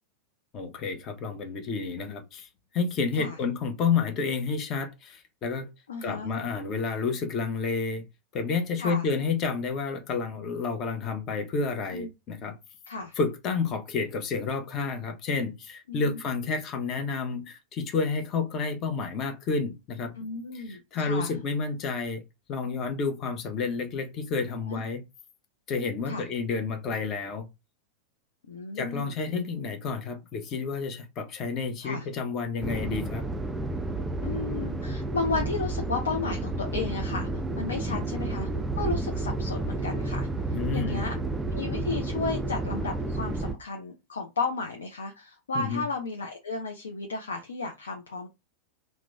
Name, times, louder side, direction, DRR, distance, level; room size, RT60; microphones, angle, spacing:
voice 1, 0.5-2.5 2.7-5.7 6.0-8.0 8.3-12.6 13.1-20.1 20.5-22.2 22.5-25.0 25.7-27.5 28.8-33.2 37.7-38.0 40.5-41.1 45.5-45.8, left 4 dB, 35° left, 0.7 m, -30 dB
voice 2, 5.9-6.3 8.8-9.1 11.9-12.1 12.9-13.1 15.9-16.2 20.2-21.3 24.7-24.8 26.0-26.2 28.5-29.1 31.8-32.1 34.2-37.3 37.6-38.5 38.7-40.3 40.7-41.2 41.5-48.3, left 4 dB, 70° left, 0.5 m, -33 dB
sound 1, 32.6-43.5, right 2 dB, 10° right, 0.3 m, -31 dB
2.9 x 2.1 x 3.3 m
figure-of-eight pair, 90°, 0 cm